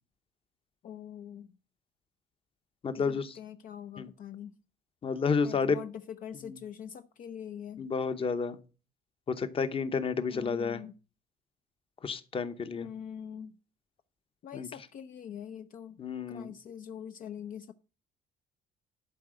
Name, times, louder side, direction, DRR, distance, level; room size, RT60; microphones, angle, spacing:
voice 1, 0.8-1.5 3.0-4.5 5.4-7.9 10.3-10.9 12.7-13.5 14.4-16.0 16.3-17.7, left 8 dB, 55° left, 0.6 m, -43 dB
voice 2, 2.8-3.4 4.0-4.1 5.0-5.8 6.5-6.6 7.8-8.6 9.3-10.8 12.0-12.9 14.5-14.7 16.0-16.5, left 5 dB, 35° left, 0.9 m, -30 dB
11.5 x 4.7 x 6.3 m
cardioid pair, 110°, 17 cm